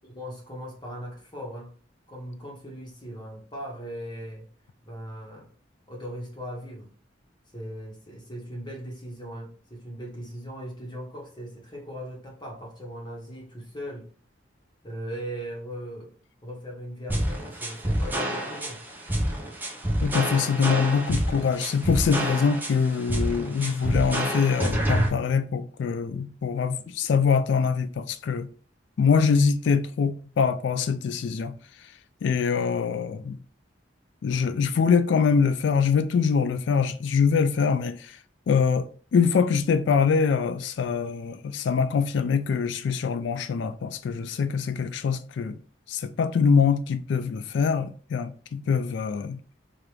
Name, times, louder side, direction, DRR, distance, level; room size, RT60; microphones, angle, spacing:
voice 1, 0.0-1.7 2.1-4.5 4.8-5.5 5.9-6.9 7.5-14.1 14.8-16.1 16.4-18.8, equal, 25° left, 1.1 m, -39 dB
sound 1, 17.1-25.1, right 1 dB, 10° right, 0.6 m, -27 dB
voice 2, 20.0-28.5 29.0-31.5 32.2-33.4 34.2-38.2 38.5-38.9 39.1-45.6 45.9-49.4, left 6 dB, 65° left, 0.3 m, -24 dB
4.9 x 2.5 x 3.0 m
head